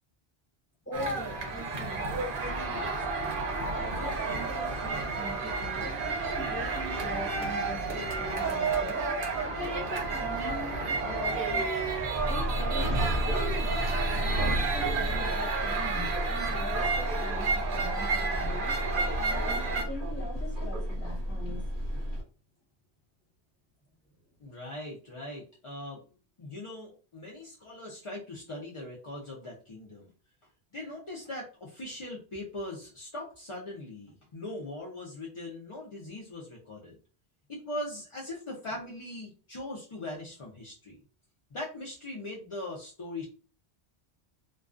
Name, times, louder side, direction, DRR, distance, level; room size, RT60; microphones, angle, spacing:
voice 1, 0.9-2.1 2.7-9.1 9.4-11.7 12.3-13.4 14.2-18.8 19.3-21.6, left 1 dB, 15° left, -5 dB, 1.1 m, -42 dB
sound 1, 0.9-19.8, right 4 dB, 60° right, 0.7 m, -31 dB
Subway metro underground, 12.2-22.2, equal, 25° right, 1.3 m, -32 dB
voice 2, 24.4-26.0 26.4-30.1 30.7-37.0 37.5-41.0 41.5-43.2, left 1 dB, 40° left, -3 dB, 0.4 m, -40 dB
2.3 x 2.3 x 2.4 m, 0.37 s
omnidirectional pair, 1.1 m